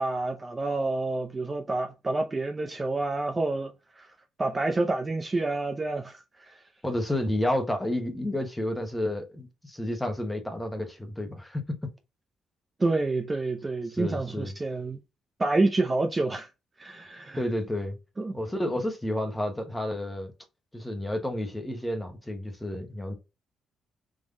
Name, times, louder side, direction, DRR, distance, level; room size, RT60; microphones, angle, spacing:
voice 1, 0.0-4.1 4.4-6.6 12.8-15.0 15.4-16.5 16.8-17.4 18.2-18.4, right 2 dB, 25° right, 0.6 m, -28 dB
voice 2, 6.8-11.6 14.0-14.5 17.3-18.0 18.3-20.3 20.7-23.1, left 1 dB, 10° left, 1.2 m, -30 dB
3.7 x 3.1 x 3.8 m
cardioid pair, 90°, 0 cm